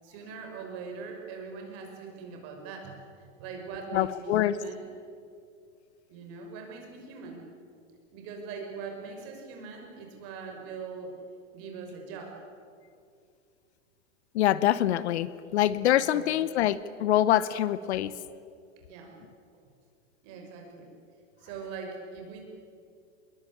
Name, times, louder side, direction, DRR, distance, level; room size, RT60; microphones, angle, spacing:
voice 1, 0.0-3.0 3.4-4.8 6.1-7.5 8.1-11.1 11.5-12.4 15.9-16.3 18.9-19.2 20.2-20.9 21.4-22.4, right 5 dB, 40° right, 2 dB, 6.1 m, -41 dB
voice 2, 3.9-4.6 14.3-18.1, left 12 dB, 60° left, 17 dB, 0.9 m, -25 dB
25.0 x 22.0 x 8.6 m, 2.3 s
hypercardioid pair, 150°, 39 cm